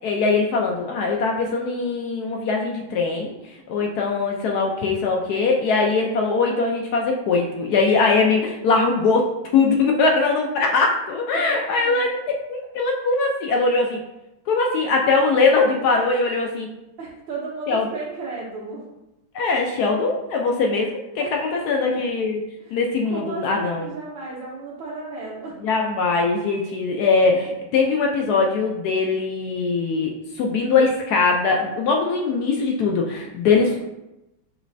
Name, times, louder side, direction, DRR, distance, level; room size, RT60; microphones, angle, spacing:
voice 1, 0.0-3.3 3.7-9.2 9.5-12.2 12.5-14.0 14.5-16.7 17.7-17.8 19.3-22.4 22.7-23.9 25.6-33.8, left 4 dB, 75° left, 1 dB, 0.9 m, -21 dB
voice 2, 11.3-12.1 17.0-18.8 21.2-21.3 21.6-21.8 22.6-22.8 23.1-25.6 33.5-33.8, right 3 dB, 75° right, -7 dB, 1.6 m, -34 dB
6.2 x 3.1 x 2.6 m, 0.94 s
omnidirectional pair, 2.1 m